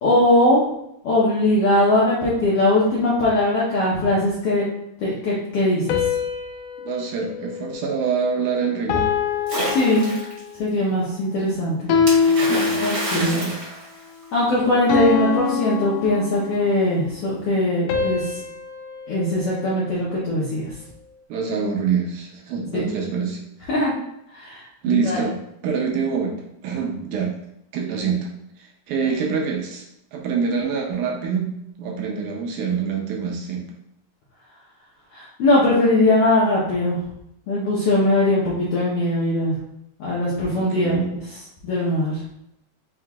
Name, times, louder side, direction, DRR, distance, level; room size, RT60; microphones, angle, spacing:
voice 1, 0.0-0.6 1.0-4.6 5.0-6.0 9.7-10.1 10.6-11.8 12.8-13.4 14.3-18.2 19.1-20.7 22.7-22.8 23.7-24.0 24.3-25.2 35.1-37.0 37.5-39.5 40.0-41.0 41.6-42.2, left 1 dB, 75° left, -7 dB, 1.4 m, -20 dB
sound 1, 5.9-8.4 8.9-10.6 11.9-13.4 14.9-16.8 17.9-20.3, left 6 dB, 90° left, 2.2 m, -25 dB
voice 2, 6.8-9.1 12.3-12.8 13.1-13.6 21.3-23.4 24.8-25.4 25.6-27.3 27.7-28.3 28.6-29.8 30.1-31.5 31.8-33.7 40.5-41.1, right 6 dB, 80° right, 0 dB, 2.0 m, -25 dB
Splash splatter, 9.5-10.4 12.1-14.5, right 2 dB, 45° right, 1.5 m, -28 dB
5.6 x 2.9 x 2.3 m, 0.78 s
omnidirectional pair, 3.7 m